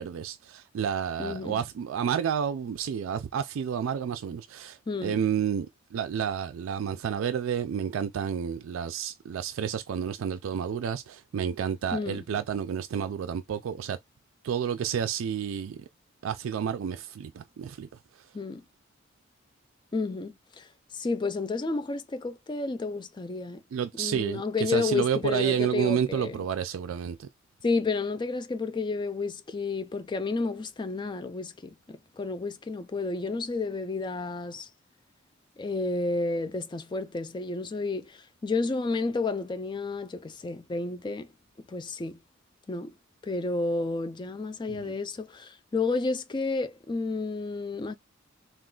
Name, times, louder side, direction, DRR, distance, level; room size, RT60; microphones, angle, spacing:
voice 1, 0.0-14.0 14.4-15.8 16.2-17.9 23.7-27.3 44.7-44.9, right 8 dB, 85° right, 0.3 m, -30 dB
voice 2, 1.2-1.6 4.9-5.2 11.9-12.2 18.3-18.6 19.9-20.7 20.9-23.6 24.0-26.3 27.6-34.7 35.6-41.3 41.7-42.2 42.7-42.9 43.2-47.9, left 3 dB, 25° left, 0.3 m, -31 dB
3.7 x 2.4 x 2.3 m
head